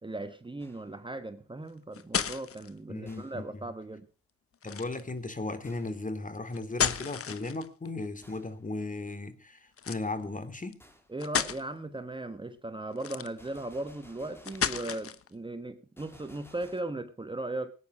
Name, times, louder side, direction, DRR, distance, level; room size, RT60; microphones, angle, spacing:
voice 1, 0.0-4.1 11.1-17.7, right 2 dB, 15° right, 1.2 m, -37 dB
Gunshot gunfire, 0.6-1.1 3.1-3.6 5.6-6.1 8.2-8.6 10.8-11.2 13.4-14.9 16.0-16.8, left 1 dB, 10° left, 3.5 m, -57 dB
sound 1, 1.7-2.7 4.6-5.1 6.5-7.9 9.8-10.0 10.7-10.8 11.2-11.6 12.9-13.6 14.4-15.3, left 8 dB, 50° left, 1.1 m, -32 dB
voice 2, 2.9-3.7 4.6-10.8, left 2 dB, 25° left, 2.5 m, -36 dB
18.5 x 9.5 x 5.4 m
cardioid pair, 65°, 29 cm